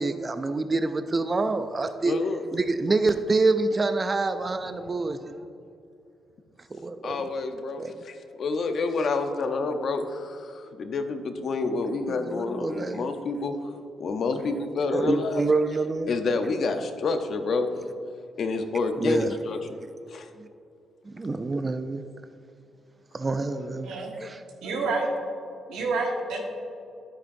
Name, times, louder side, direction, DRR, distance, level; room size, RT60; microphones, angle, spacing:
voice 1, 0.0-2.1 2.5-5.3 6.7-7.2 7.8-7.9 12.1-13.1 14.3-14.4 14.9-16.1 19.0-19.3 21.1-22.0 23.1-24.7, right 3 dB, 35° right, 9 dB, 0.4 m, -27 dB
voice 2, 2.0-2.4 7.0-13.6 14.0-15.5 16.1-17.7 18.4-19.6 20.1-20.3, left 3 dB, 60° left, 7 dB, 0.7 m, -28 dB
voice 3, 24.6-25.1 25.7-26.4, right 3 dB, 85° right, 0 dB, 1.5 m, -28 dB
9.8 x 8.7 x 2.6 m, 2.6 s
cardioid pair, 70°, 0 cm